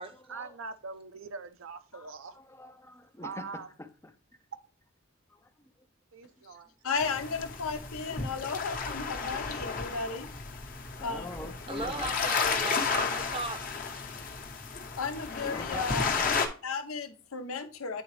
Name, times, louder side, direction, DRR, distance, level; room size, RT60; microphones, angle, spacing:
voice 1, 0.3-2.4 3.2-3.7 6.1-6.7, right 4 dB, 70° right, 0.6 m, -42 dB
voice 2, 1.9-4.4 5.3-5.5 10.9-12.2 14.9-16.6, left 2 dB, 10° left, 0.4 m, -44 dB
voice 3, 6.8-10.3 11.0-11.3 15.0-16.1 16.6-18.0, left 5 dB, 85° left, 0.8 m, -34 dB
sound 1, 7.0-16.5, left 5 dB, 40° left, 0.9 m, -33 dB
voice 4, 11.7-13.6, right 3 dB, 25° right, 0.7 m, -37 dB
9.1 x 3.9 x 3.1 m
head